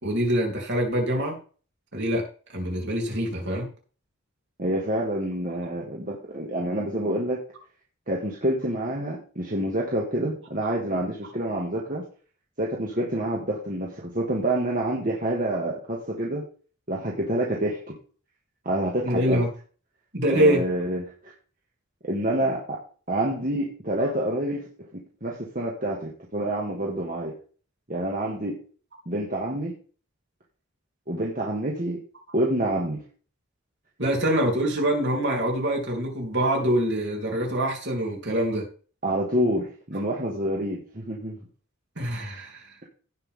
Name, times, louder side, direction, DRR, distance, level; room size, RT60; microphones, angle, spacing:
voice 1, 0.0-1.3 1.9-2.2 2.5-3.7 19.0-19.5 20.1-20.6 34.0-38.7 42.0-42.7, right 1 dB, 55° right, -1 dB, 3.7 m, -25 dB
voice 2, 4.6-7.4 8.1-12.0 12.6-16.4 16.9-17.8 18.7-19.4 20.3-21.0 22.0-22.8 23.1-24.6 24.9-27.3 27.9-28.6 29.1-29.7 31.1-32.0 32.3-33.0 39.0-41.4, right 1 dB, 40° right, -3 dB, 2.1 m, -27 dB
17.0 x 5.8 x 3.7 m, 0.40 s
head